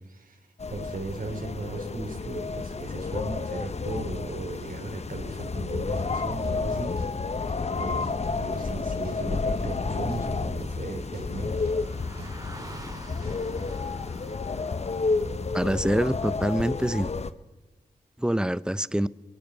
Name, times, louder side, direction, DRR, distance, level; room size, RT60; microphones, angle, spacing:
voice 1, 0.1-0.4 0.7-6.9 7.7-11.7, right 3 dB, 60° right, 4 dB, 3.4 m, -37 dB
sound 1, 0.6-17.3, left 4 dB, 40° left, 0.8 m, -31 dB
sound 2, 5.9-13.6, right 3 dB, 75° right, 3.0 m, -49 dB
Car passing by, 10.0-16.3, right 1 dB, 20° right, 2.4 m, -48 dB
voice 2, 15.5-17.1 18.2-19.1, right 1 dB, 5° right, 18 dB, 0.6 m, -25 dB
22.5 x 12.0 x 4.0 m, 1.1 s
cardioid pair, 45°, 16 cm